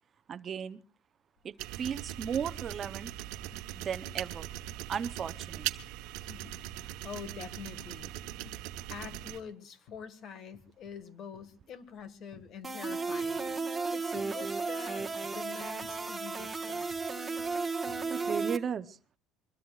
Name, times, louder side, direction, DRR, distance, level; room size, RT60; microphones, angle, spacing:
voice 1, 0.3-0.8 1.4-3.1 3.8-4.5 4.9-5.7 18.1-19.0, right 7 dB, 30° right, 13 dB, 0.7 m, -35 dB
sound 1, 1.4-1.6 1.9-2.6 3.0-3.8 4.1-4.4 4.7-7.5 7.8-8.7 9.1-9.5 9.9-10.1 10.5-11.0 11.3-12.7 13.2-13.6 14.2-14.6 14.9-18.2, left 5 dB, 65° left, 3.1 m, -58 dB
sound 2, 1.6-9.4, right 13 dB, 75° right, 1.1 m, -40 dB
voice 2, 6.2-8.1 8.9-13.6 13.9-17.0, left 7 dB, 45° left, 11 dB, 1.6 m, -46 dB
sound 3, 12.6-18.6, right 4 dB, 10° right, 1.3 m, -34 dB
24.0 x 21.0 x 2.4 m, 0.37 s
cardioid pair, 145°, 0 cm